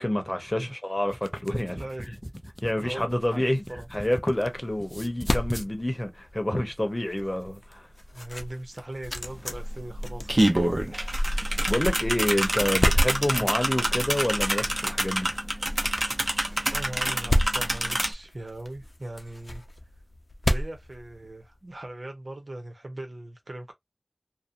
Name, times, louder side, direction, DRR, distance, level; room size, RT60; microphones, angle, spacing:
voice 1, 0.0-1.8 2.1-2.2 2.6-3.6 3.9-7.9 11.7-15.3, left 1 dB, 35° left, 0.8 m, -28 dB
sound 1, 1.0-4.5 4.8-5.7, equal, 5° right, 0.3 m, -39 dB
voice 2, 1.7-2.1 2.8-3.9 8.1-10.6 13.3-13.5 16.7-19.6 20.4-23.7, right 1 dB, 80° right, 0.8 m, -39 dB
sound 2, 3.0-21.7, left 1 dB, 70° left, 0.5 m, -33 dB
sound 3, 9.2-9.3 9.6-18.1, right 1 dB, 50° right, 0.6 m, -27 dB
2.7 x 2.1 x 2.5 m
wide cardioid pair, 45°, 0 cm